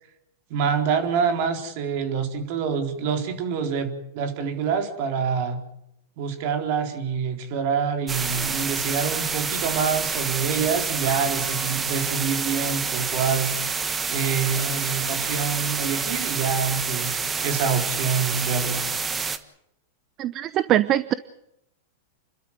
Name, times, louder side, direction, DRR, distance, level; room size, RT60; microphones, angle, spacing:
voice 1, 0.5-5.6 6.2-13.5 14.1-18.8, right 6 dB, 55° right, 6 dB, 4.2 m, -26 dB
sound 1, 8.1-19.4, right 5 dB, 20° right, 1.6 m, -28 dB
voice 2, 20.2-21.1, right 12 dB, 35° right, 15 dB, 0.8 m, -22 dB
29.0 x 12.5 x 9.9 m, 0.80 s
hypercardioid pair, 125°, 0 cm